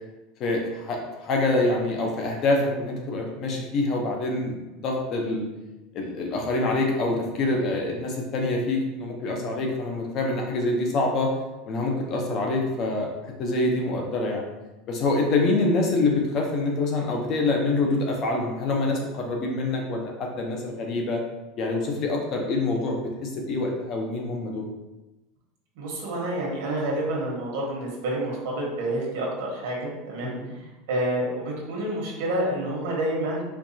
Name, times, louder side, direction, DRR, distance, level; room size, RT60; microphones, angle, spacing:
voice 1, 0.4-4.5 4.8-5.5 5.9-11.3 11.6-13.1 13.4-14.5 14.9-21.2 21.6-24.7 30.2-30.6, left 2 dB, 30° left, 1 dB, 0.6 m, -26 dB
voice 2, 25.8-30.3 30.9-33.4, right 1 dB, 75° right, -3 dB, 1.2 m, -28 dB
4.5 x 2.3 x 2.7 m, 1.0 s
supercardioid pair, 175°, 0 cm